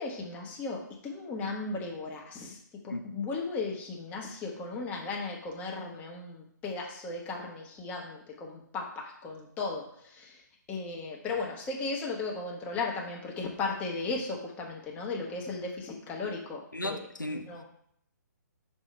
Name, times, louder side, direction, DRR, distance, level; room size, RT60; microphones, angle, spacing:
voice 1, 0.0-2.6 2.8-10.4 10.7-17.0 17.3-17.6, left 3 dB, 15° left, 1.0 m, -36 dB
voice 2, 2.9-3.2 16.7-17.5, left 1 dB, 85° left, 0.6 m, -36 dB
5.8 x 3.6 x 5.2 m
figure-of-eight pair, 130°, 10 cm